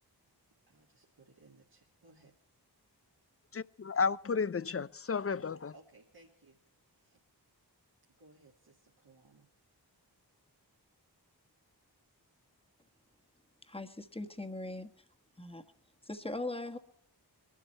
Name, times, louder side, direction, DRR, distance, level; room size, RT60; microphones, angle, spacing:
voice 1, 0.7-2.3 5.7-6.6 6.9-7.2 8.2-9.5, right 2 dB, 65° right, 2.3 m, -61 dB
voice 2, 3.5-5.7, left 5 dB, 35° left, 0.5 m, -32 dB
voice 3, 13.7-14.9 15.4-15.6 16.0-16.8, left 2 dB, 15° left, 1.5 m, -40 dB
21.5 x 12.5 x 4.4 m
wide cardioid pair, 70°, 40 cm